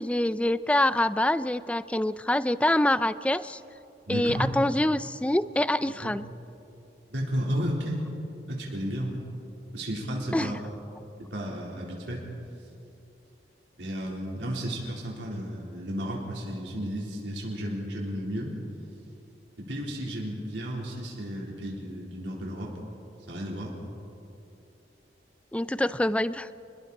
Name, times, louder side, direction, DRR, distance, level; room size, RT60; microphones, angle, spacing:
voice 1, 0.0-3.6 4.1-6.2 10.3-10.5 25.5-26.5, left 1 dB, 5° left, 15 dB, 0.4 m, -25 dB
voice 2, 4.1-4.5 6.0-6.1 7.1-8.0 8.5-9.2 9.7-10.6 11.3-12.2 13.8-18.6 19.6-22.7 23.3-23.7, equal, 85° right, -3 dB, 3.8 m, -33 dB
29.5 x 21.0 x 4.2 m, 2.8 s
head